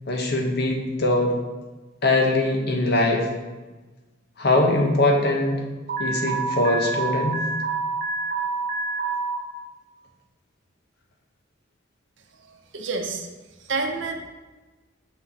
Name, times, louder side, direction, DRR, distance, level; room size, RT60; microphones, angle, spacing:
voice 1, 0.1-1.3 2.0-3.3 4.4-5.6 6.0-7.4, left 2 dB, 60° left, 2 dB, 1.0 m, -22 dB
Alarm, 5.9-9.4, right 4 dB, 50° right, 1.0 m, -27 dB
voice 2, 12.7-13.3 13.7-14.1, right 4 dB, 70° right, 4 dB, 0.7 m, -27 dB
6.1 x 5.8 x 2.9 m, 1.2 s
head